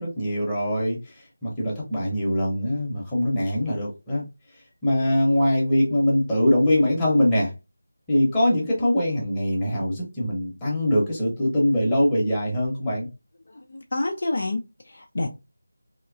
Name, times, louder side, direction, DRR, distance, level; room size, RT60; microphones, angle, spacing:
voice 1, 0.0-4.2 4.8-7.5 8.1-13.1, left 1 dB, 10° left, 0.9 m, -23 dB
voice 2, 13.5-15.3, left 2 dB, 45° left, 0.4 m, -28 dB
3.0 x 2.9 x 2.4 m
figure-of-eight pair, 165°, 0 cm